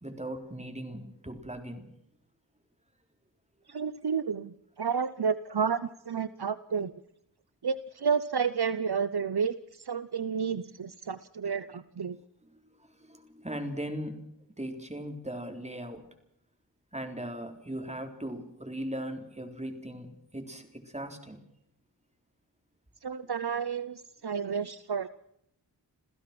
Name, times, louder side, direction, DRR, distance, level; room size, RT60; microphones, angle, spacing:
voice 1, 0.0-1.9 13.0-14.2 14.6-16.0 16.9-21.4, right 1 dB, 15° right, 4 dB, 3.9 m, -38 dB
voice 2, 3.7-6.9 7.6-12.2 23.0-25.1, right 6 dB, 60° right, 13 dB, 0.9 m, -31 dB
28.0 x 15.5 x 6.1 m, 0.73 s
wide cardioid pair, 75°, 43 cm